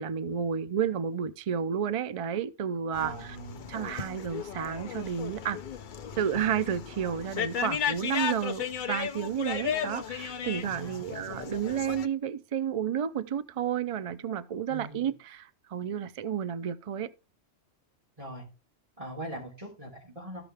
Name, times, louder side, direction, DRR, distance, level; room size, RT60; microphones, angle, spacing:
voice 1, 0.0-3.4 3.7-5.6 6.2-17.1, right 8 dB, 50° right, 0.4 m, -31 dB
sound 1, 2.9-12.1, left 8 dB, 50° left, 0.7 m, -35 dB
voice 2, 3.0-3.8 10.6-11.7 14.7-15.1 18.2-18.4 19.0-20.4, right 1 dB, 30° right, 3.3 m, -42 dB
14.0 x 5.6 x 3.4 m
omnidirectional pair, 1.2 m